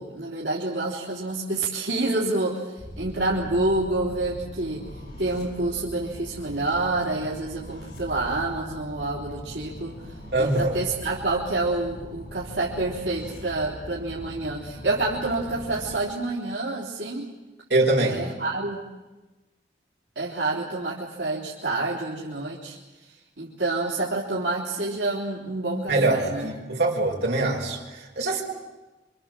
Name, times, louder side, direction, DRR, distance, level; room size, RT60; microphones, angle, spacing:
voice 1, 0.0-4.9 5.2-17.3 18.0-18.8 20.2-26.5, right 2 dB, 90° right, -5 dB, 3.6 m, -28 dB
sound 1, 2.8-15.9, equal, 70° left, 7.7 m, -41 dB
voice 2, 10.3-10.8 17.7-18.2 25.9-28.4, right 2 dB, 70° right, -1 dB, 5.4 m, -23 dB
26.5 x 25.5 x 7.5 m, 1.1 s
head